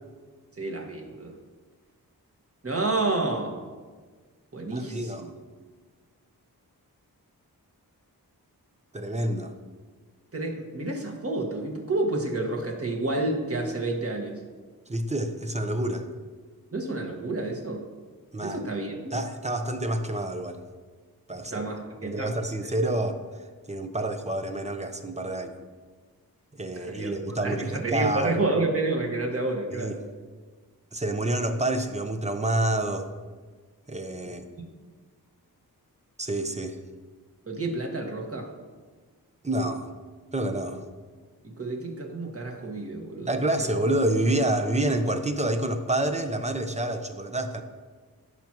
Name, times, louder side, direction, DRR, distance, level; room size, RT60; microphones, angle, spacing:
voice 1, 0.6-1.4 2.6-3.6 4.5-5.3 10.3-14.4 16.7-17.9 18.4-19.1 21.5-22.3 26.7-27.1 27.4-30.0 34.2-34.3 37.5-38.5 41.4-43.3, right 2 dB, 40° right, 1 dB, 1.7 m, -29 dB
voice 2, 4.7-5.4 8.9-9.5 14.9-16.1 18.3-18.6 19.1-20.6 21.3-21.7 22.0-23.2 23.7-25.6 26.5-28.4 29.7-30.0 30.9-33.1 33.9-34.4 36.2-36.8 39.4-39.9 40.3-40.8 43.2-47.6, right 1 dB, 20° right, 7 dB, 0.8 m, -28 dB
16.0 x 6.1 x 3.0 m, 1.4 s
wide cardioid pair, 90°, 37 cm